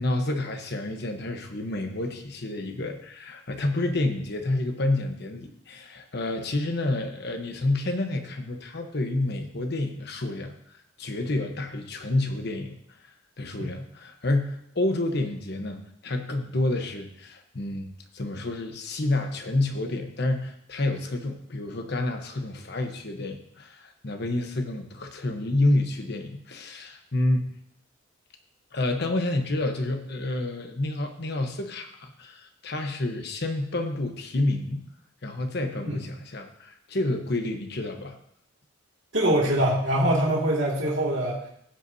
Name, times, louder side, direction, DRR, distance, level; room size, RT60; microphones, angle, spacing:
voice 1, 0.0-10.5 11.0-12.8 13.0-27.5 28.7-34.9 35.2-38.2, left 2 dB, 55° left, 5 dB, 1.1 m, -29 dB
voice 2, 39.1-41.5, right 1 dB, 65° right, -4 dB, 2.5 m, -23 dB
16.0 x 8.1 x 2.8 m, 0.73 s
head